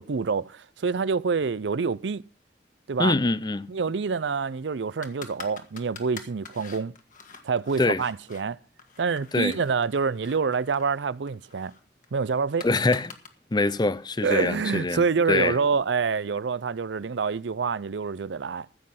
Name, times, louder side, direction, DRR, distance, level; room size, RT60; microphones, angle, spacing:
voice 1, 0.0-2.2 2.9-3.1 3.7-6.9 7.4-8.6 9.0-11.7 12.1-12.7 14.2-18.7, right 5 dB, 85° right, 0.5 m, -27 dB
voice 2, 3.0-3.7 7.8-8.0 9.3-9.6 12.6-13.1 13.5-15.5, left 2 dB, 25° left, 0.6 m, -24 dB
sound 1, 5.0-8.4 8.8-13.3, left 5 dB, 50° left, 1.9 m, -45 dB
15.0 x 7.6 x 5.8 m
head